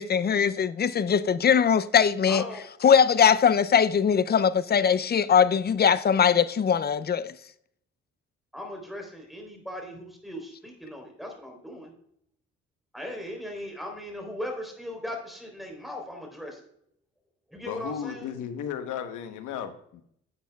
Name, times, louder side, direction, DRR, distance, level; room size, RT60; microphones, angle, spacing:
voice 1, 0.0-2.4 2.8-7.3, left 7 dB, 35° left, 0.5 m, -21 dB
voice 2, 2.3-2.6 8.5-11.9 12.9-16.6 17.5-18.3, left 1 dB, ahead, 3.5 m, -38 dB
voice 3, 17.6-20.0, left 8 dB, 90° left, 1.1 m, -35 dB
11.0 x 7.8 x 2.3 m
cardioid pair, 90°, 30 cm